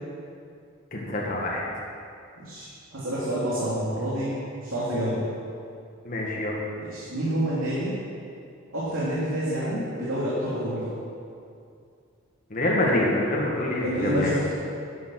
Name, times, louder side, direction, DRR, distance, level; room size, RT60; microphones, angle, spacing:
voice 1, 0.9-1.6 6.1-6.6 12.5-14.3, left 1 dB, 40° left, -3 dB, 1.7 m, -26 dB
voice 2, 2.4-4.3 4.6-5.2 6.9-7.9 8.7-10.9 13.8-14.5, right 1 dB, 85° right, -9 dB, 2.9 m, -28 dB
12.0 x 8.5 x 6.4 m, 2.4 s
head